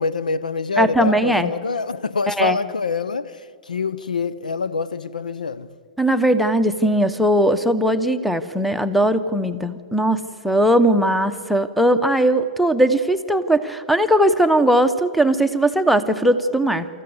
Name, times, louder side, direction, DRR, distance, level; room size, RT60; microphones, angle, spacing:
voice 1, 0.0-3.4 3.7-5.7, left 4 dB, 90° left, 0.6 m, -25 dB
voice 2, 0.8-1.5 2.3-2.6 6.0-16.9, right 1 dB, ahead, 0.9 m, -19 dB
25.0 x 14.0 x 8.0 m
hypercardioid pair, 120°, 4 cm